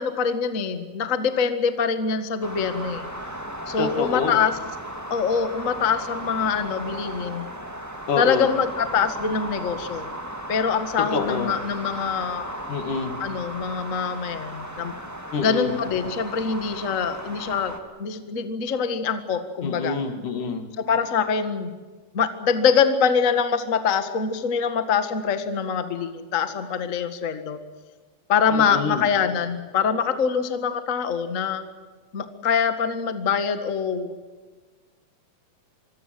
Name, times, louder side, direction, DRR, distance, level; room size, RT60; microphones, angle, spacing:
voice 1, 0.0-3.1 3.7-4.6 5.1-7.5 8.2-10.1 10.5-12.5 13.2-14.9 15.4-20.0 20.8-21.7 22.1-27.6 28.3-31.6 32.1-34.1, left 6 dB, 75° left, 8 dB, 0.7 m, -24 dB
sound 1, 2.4-17.8, right 1 dB, 5° right, 1.3 m, -36 dB
voice 2, 3.8-4.4 8.1-8.5 11.0-11.5 12.7-13.2 15.3-15.7 19.6-20.7 28.7-29.0, left 5 dB, 55° left, 7 dB, 3.5 m, -27 dB
26.5 x 22.5 x 7.7 m, 1.3 s
omnidirectional pair, 4.6 m